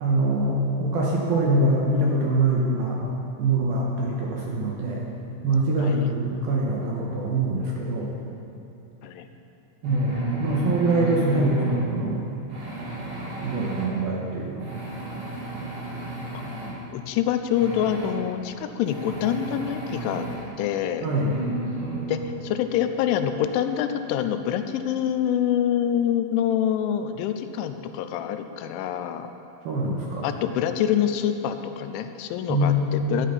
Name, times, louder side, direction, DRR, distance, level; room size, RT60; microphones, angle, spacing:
voice 1, 0.0-3.0 3.4-5.0 5.4-8.1 9.8-12.3 13.4-14.8 21.0-21.3 29.7-30.3 32.5-33.3, right 1 dB, 70° right, -3 dB, 2.4 m, -24 dB
voice 2, 5.8-6.1 9.0-9.3 11.1-11.3 16.3-16.4 16.9-20.3 20.6-21.1 22.1-29.3 30.2-33.3, left 9 dB, 85° left, 8 dB, 3.0 m, -26 dB
sound 1, 9.8-11.8 12.5-13.9 14.6-16.7 17.5-18.1 18.9-20.4 21.1-22.3, right 3 dB, 40° right, 3.7 m, -33 dB
14.0 x 10.0 x 5.7 m, 2.8 s
omnidirectional pair, 5.5 m